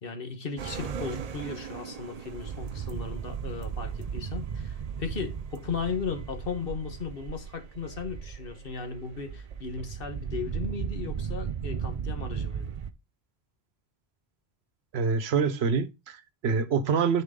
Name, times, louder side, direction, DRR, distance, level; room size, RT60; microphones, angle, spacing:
voice 1, 0.0-12.7, left 5 dB, 60° left, 1.4 m, -36 dB
sound 1, 0.6-12.9, right 7 dB, 45° right, 0.6 m, -36 dB
voice 2, 14.9-17.2, right 5 dB, 80° right, 1.0 m, -26 dB
10.0 x 4.6 x 3.7 m
omnidirectional pair, 1.1 m